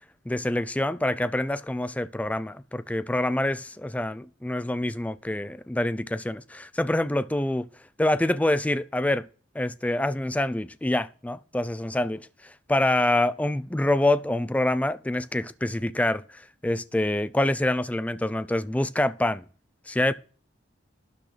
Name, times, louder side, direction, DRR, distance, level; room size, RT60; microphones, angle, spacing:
voice 1, 0.3-7.7 8.0-9.3 9.5-19.4 19.9-20.1, left 1 dB, 5° left, 0.3 m, -26 dB
12.0 x 8.5 x 3.3 m
head